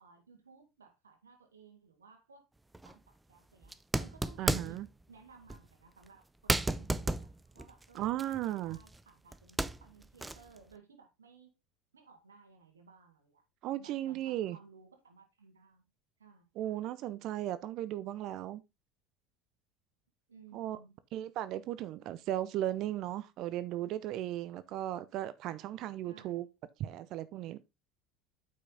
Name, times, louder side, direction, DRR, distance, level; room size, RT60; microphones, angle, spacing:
voice 1, 0.0-2.5 2.8-7.3 7.5-11.5 11.9-13.4 13.8-15.8 16.2-16.8 20.3-20.9 26.0-26.5, right 5 dB, 85° right, 1.9 m, -59 dB
sound 1, 2.7-2.9 3.6-4.9 5.5-5.7 6.1-6.2 6.5-9.0 9.3-10.6, right 2 dB, 10° right, 0.6 m, -34 dB
voice 2, 4.4-4.9 7.9-8.8 13.6-14.6 16.6-18.6 20.5-20.8 21.1-26.4 26.8-27.6, right 13 dB, 55° right, 0.6 m, -36 dB
8.4 x 5.8 x 3.8 m
hypercardioid pair, 75°, 0 cm